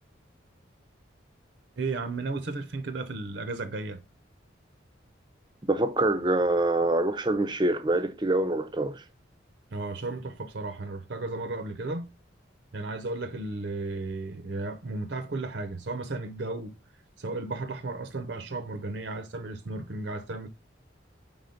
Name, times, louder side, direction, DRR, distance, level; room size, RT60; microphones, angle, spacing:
voice 1, 1.8-4.0 9.7-12.1 12.7-16.7 17.2-20.5, right 3 dB, 60° right, 0.7 m, -34 dB
voice 2, 5.7-9.0, right 2 dB, 20° right, 0.6 m, -25 dB
5.0 x 3.9 x 5.0 m
head